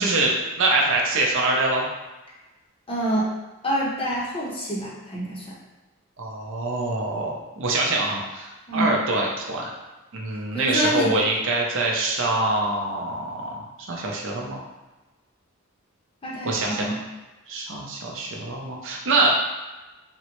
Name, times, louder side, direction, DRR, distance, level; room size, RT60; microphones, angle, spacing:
voice 1, 0.0-1.8 6.2-9.7 10.1-14.6 16.4-17.0 17.5-19.4, right 2 dB, 65° right, -1 dB, 0.6 m, -24 dB
voice 2, 2.9-3.3 3.6-5.5 8.7-9.0 10.5-11.1 16.2-17.0, right 1 dB, 25° left, -4 dB, 0.6 m, -26 dB
3.5 x 2.1 x 2.9 m, 1.1 s
head